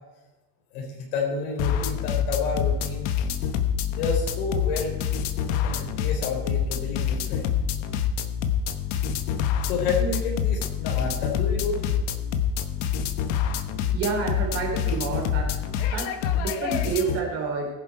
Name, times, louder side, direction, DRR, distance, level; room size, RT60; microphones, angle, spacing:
voice 1, 0.7-3.3 3.9-4.9 5.5-7.4 9.6-11.9, left 4 dB, 65° left, -1 dB, 4.0 m, -30 dB
sound 1, 1.6-17.2, left 8 dB, 45° left, 1.0 m, -26 dB
voice 2, 13.9-15.5 15.9-16.1 16.4-17.7, right 5 dB, 30° right, 0 dB, 2.9 m, -28 dB
21.0 x 7.3 x 4.5 m, 1.1 s
supercardioid pair, 180°, 48 cm